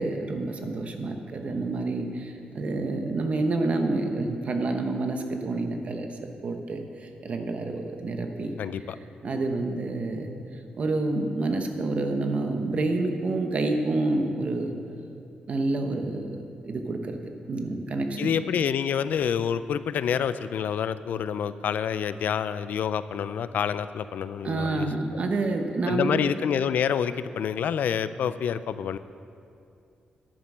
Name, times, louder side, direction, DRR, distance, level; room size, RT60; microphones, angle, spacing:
voice 1, 0.0-8.5 9.2-10.3 10.8-14.7 15.5-17.2 17.5-18.3 24.4-26.2, right 2 dB, 50° right, 5 dB, 1.1 m, -28 dB
voice 2, 8.6-9.0 18.2-24.9 25.9-29.0, left 8 dB, 75° left, 14 dB, 0.4 m, -27 dB
10.0 x 8.9 x 6.2 m, 2.5 s
cardioid pair, 120°, 3 cm